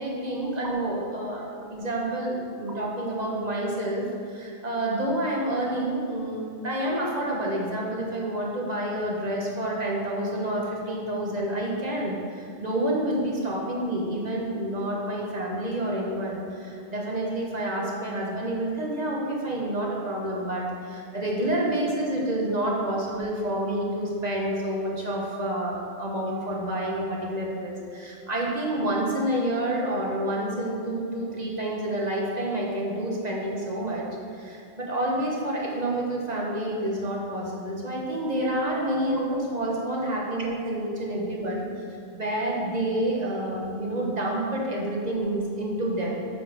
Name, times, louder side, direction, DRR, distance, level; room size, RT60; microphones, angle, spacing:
voice 1, 0.0-34.1 34.3-41.7 42.1-46.3, right 1 dB, 40° right, -3 dB, 1.1 m, -28 dB
7.1 x 5.1 x 4.9 m, 2.5 s
omnidirectional pair, 1.1 m